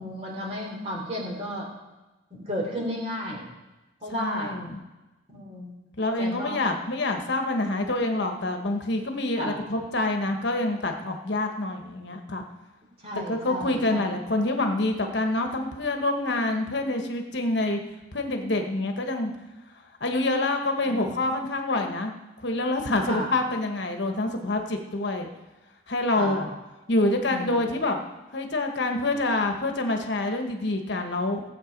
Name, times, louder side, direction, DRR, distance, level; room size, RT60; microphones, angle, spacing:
voice 1, 0.0-1.7 2.3-3.5 4.0-4.8 5.3-5.7 6.2-6.6 9.4-9.6 13.0-14.1 20.8-21.2 23.1-23.3 26.1-26.5 27.3-27.7, equal, 30° right, -1 dB, 3.1 m, -33 dB
voice 2, 4.1-4.8 6.0-12.4 13.3-17.8 18.1-19.3 20.0-22.1 22.4-25.3 25.9-26.5 26.9-28.0 28.3-31.4, left 2 dB, 60° left, 4 dB, 1.3 m, -26 dB
17.0 x 7.8 x 5.2 m, 1.1 s
head